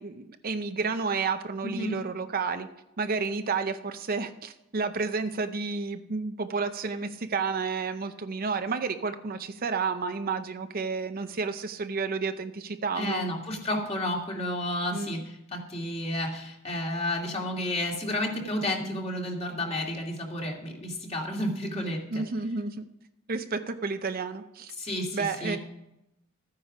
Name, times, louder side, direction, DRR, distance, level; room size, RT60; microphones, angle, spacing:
voice 1, 0.0-2.7 3.0-13.2 14.9-15.2 22.1-22.9 23.3-24.7 25.1-25.6, right 4 dB, 45° right, 8 dB, 0.6 m, -31 dB
voice 2, 1.6-2.0 12.9-22.0 24.8-25.6, left 1 dB, 30° left, 0 dB, 2.5 m, -31 dB
13.5 x 9.5 x 5.0 m, 0.88 s
head